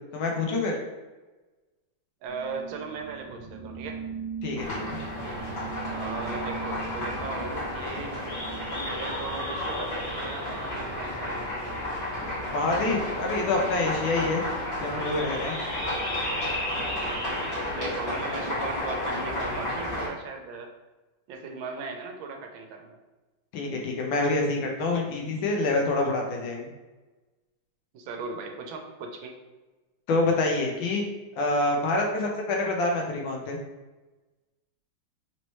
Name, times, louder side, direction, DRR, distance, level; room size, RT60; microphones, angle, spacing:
voice 1, 0.1-0.8 4.4-5.0 12.5-14.5 14.8-15.6 23.5-26.7 30.1-31.0 31.4-33.6, left 2 dB, 85° left, 0 dB, 1.5 m, -26 dB
voice 2, 2.2-4.0 5.8-8.1 8.9-11.4 17.0-17.4 17.7-20.7 21.3-23.0 27.9-29.3, right 4 dB, 80° right, 3 dB, 1.4 m, -38 dB
sound 1, 2.3-10.0, right 5 dB, 35° right, 1.5 m, -40 dB
sound 2, 4.6-20.1, left 1 dB, 60° left, 2.2 m, -32 dB
4.1 x 3.0 x 3.0 m, 1.2 s
omnidirectional pair, 2.1 m